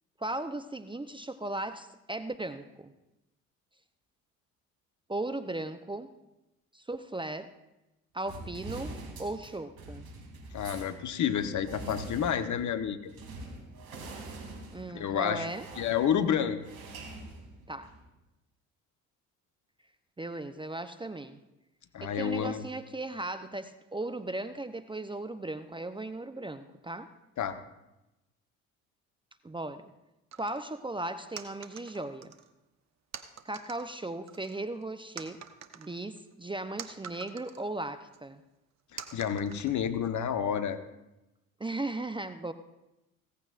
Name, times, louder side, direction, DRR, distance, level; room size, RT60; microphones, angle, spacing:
voice 1, 0.2-2.9 5.1-6.1 6.7-7.5 8.1-10.0 14.7-15.7 17.7-17.9 20.2-21.4 22.0-27.1 29.4-29.8 30.4-32.3 33.4-35.4 35.7-38.4 41.6-42.5, right 2 dB, 10° right, 10 dB, 0.7 m, -37 dB
sound 1, 8.2-18.1, right 2 dB, 60° right, 2.9 m, -45 dB
voice 2, 10.5-13.1 14.9-15.5 15.8-16.6 21.9-22.6 27.4-27.6 38.9-40.8, left 8 dB, 45° left, 9 dB, 1.1 m, -30 dB
sound 2, 30.3-30.7 31.4-32.5 33.1-33.9 34.3-34.8 35.2-37.7 38.1-38.2 39.0-40.1, right 7 dB, 40° right, 1.1 m, -46 dB
16.5 x 15.0 x 2.5 m, 0.95 s
hypercardioid pair, 55°, 40 cm